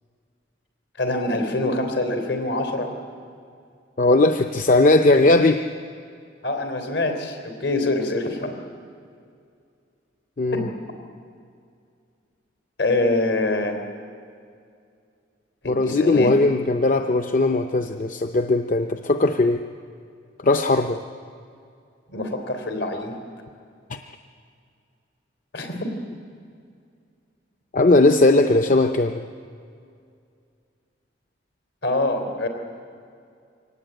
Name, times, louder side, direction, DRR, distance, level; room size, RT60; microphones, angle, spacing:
voice 1, 1.0-2.9 6.4-8.6 10.5-10.6 12.8-13.8 15.8-16.3 22.1-23.1 25.5-25.9 31.8-32.5, left 2 dB, 70° left, 6 dB, 3.8 m, -24 dB
voice 2, 4.0-5.6 10.4-10.7 15.6-19.6 20.4-21.0 23.9-24.0 27.7-29.2, left 2 dB, 45° left, 6 dB, 0.7 m, -18 dB
24.0 x 18.0 x 9.0 m, 2.3 s
head